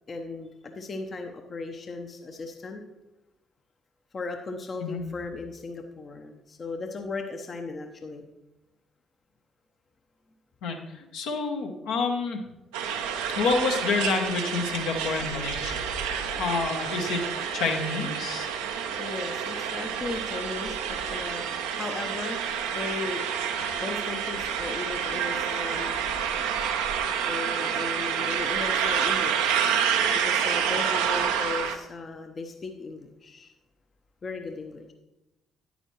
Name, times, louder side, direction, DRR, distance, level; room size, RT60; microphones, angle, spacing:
voice 1, 0.1-2.8 4.1-8.2 19.0-22.4 22.7-23.2 23.7-25.9 27.3-29.8 30.1-33.5 34.2-34.9, left 3 dB, 40° left, 4 dB, 0.9 m, -36 dB
voice 2, 10.6-12.4 13.4-15.8 16.4-17.2 17.5-18.5, left 4 dB, 65° left, 2 dB, 1.1 m, -28 dB
sound 1, 12.7-31.7, right 7 dB, 70° right, 0.7 m, -28 dB
9.8 x 9.3 x 3.1 m, 0.97 s
figure-of-eight pair, 45°, 0 cm